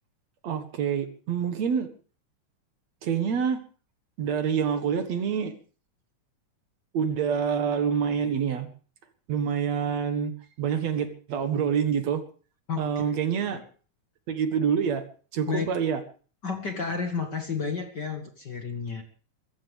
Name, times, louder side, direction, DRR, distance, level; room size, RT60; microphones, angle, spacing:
voice 1, 0.4-1.9 3.0-3.6 4.2-5.5 6.9-8.7 9.3-12.2 12.8-13.6 14.3-15.0 15.3-16.0, right 7 dB, 60° right, 9 dB, 2.6 m, -27 dB
voice 2, 12.7-13.1 15.5-15.7 16.4-19.0, left 5 dB, 40° left, 5 dB, 1.8 m, -31 dB
25.0 x 14.0 x 3.4 m, 0.39 s
omnidirectional pair, 3.6 m